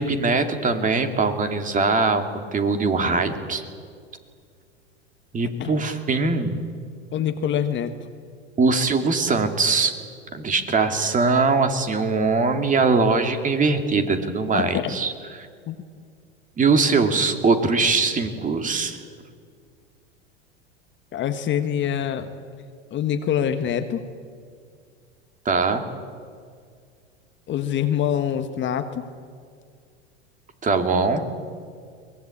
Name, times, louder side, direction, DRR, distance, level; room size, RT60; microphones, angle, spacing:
voice 1, 0.0-2.2 2.5-3.6 5.3-6.5 8.6-9.9 10.3-15.1 15.4-15.5 16.6-19.0 25.4-25.8 30.6-31.3, right 4 dB, 25° right, 6 dB, 2.6 m, -21 dB
voice 2, 7.1-7.9 14.5-14.9 15.7-15.8 21.1-22.3 22.9-24.0 27.5-29.1, left 9 dB, 35° left, 8 dB, 1.5 m, -25 dB
23.5 x 20.0 x 8.6 m, 2.1 s
hypercardioid pair, 105°, 33 cm